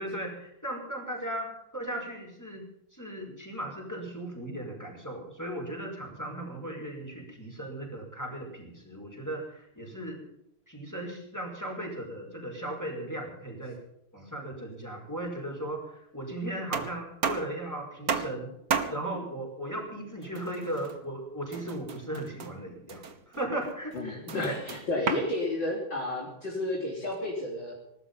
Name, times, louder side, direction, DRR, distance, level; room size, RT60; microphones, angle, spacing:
voice 1, 0.0-2.7 2.9-10.2 10.7-13.8 14.1-18.6 18.9-24.6, right 1 dB, 5° left, -1 dB, 5.3 m, -37 dB
sound 1, 15.3-15.4 16.7-17.6 18.1-18.5 18.7-19.1 20.2-21.0 21.5-22.6 22.9-25.3, right 6 dB, 45° right, 1.7 m, -34 dB
voice 2, 23.9-27.7, left 2 dB, 55° left, -5 dB, 4.4 m, -32 dB
20.0 x 13.0 x 5.6 m, 0.83 s
omnidirectional pair, 2.4 m